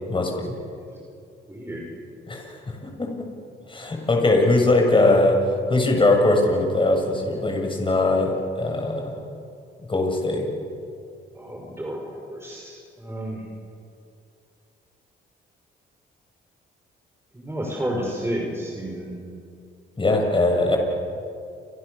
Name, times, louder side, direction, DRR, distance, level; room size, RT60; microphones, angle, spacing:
voice 1, 0.1-0.5 2.3-2.5 3.0-3.1 3.7-5.4 5.7-9.2 9.9-10.5 20.0-20.8, left 2 dB, 25° left, 2 dB, 7.4 m, -20 dB
voice 2, 1.5-1.9 11.3-13.4 17.3-19.2, equal, 10° right, -1 dB, 5.6 m, -31 dB
29.0 x 26.5 x 7.1 m, 2.5 s
cardioid pair, 90°, 20 cm